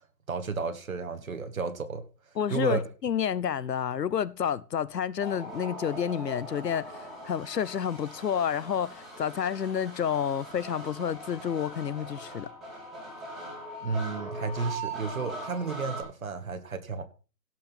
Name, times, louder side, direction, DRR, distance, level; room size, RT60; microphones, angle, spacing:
voice 1, 0.3-2.0 2.5-2.8 13.8-17.1, right 4 dB, 55° right, 1.6 m, -32 dB
voice 2, 2.3-12.5, left 8 dB, 75° left, 0.9 m, -30 dB
sound 1, 5.2-16.0, right 1 dB, ahead, 2.4 m, -41 dB
17.0 x 6.2 x 4.4 m
hypercardioid pair, 170°, 50 cm